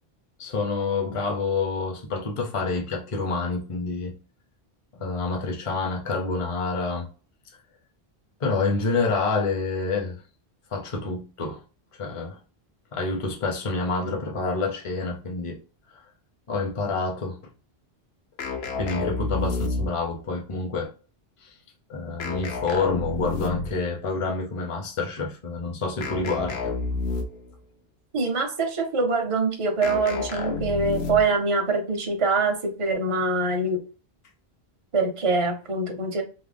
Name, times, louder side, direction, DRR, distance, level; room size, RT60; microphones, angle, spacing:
voice 1, 0.4-4.2 4.9-7.1 8.4-10.2 10.7-11.6 12.0-12.4 12.9-15.6 16.5-17.4 18.6-20.9 21.4-21.5 21.9-27.0, left 4 dB, 35° left, 0.6 m, -28 dB
sound 1, 18.4-20.2 22.2-23.9 26.0-27.5 29.8-31.4, left 4 dB, 80° left, 0.8 m, -30 dB
voice 2, 28.1-33.8 34.9-36.2, right 3 dB, 45° right, 0.5 m, -24 dB
2.5 x 2.0 x 3.3 m
omnidirectional pair, 1.1 m